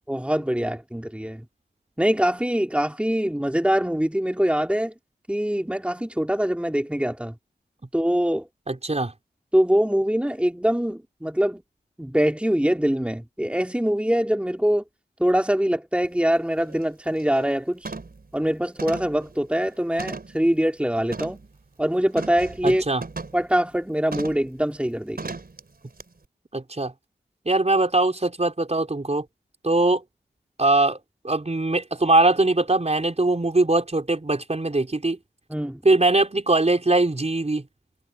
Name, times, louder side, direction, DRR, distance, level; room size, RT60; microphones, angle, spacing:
voice 1, 0.1-1.4 2.0-4.9 5.3-7.3 7.9-8.5 9.5-11.6 12.0-14.8 15.2-17.9 18.3-21.4 21.8-22.8 23.3-25.3 35.5-35.8, equal, 5° right, 3.0 m, -23 dB
voice 2, 8.7-9.1 22.6-23.0 26.5-26.9 27.4-29.2 29.6-30.0 30.6-31.0 31.2-35.2 35.8-37.6, right 2 dB, 35° right, 4.4 m, -21 dB
sound 1, 16.0-16.1 16.6-16.8 17.2-17.5 17.8-18.2 18.8-20.4 21.1-21.5 22.2-23.4 24.1-24.5 25.2-25.6 26.0-26.1, right 3 dB, 55° right, 4.1 m, -36 dB
cardioid pair, 40°, 19 cm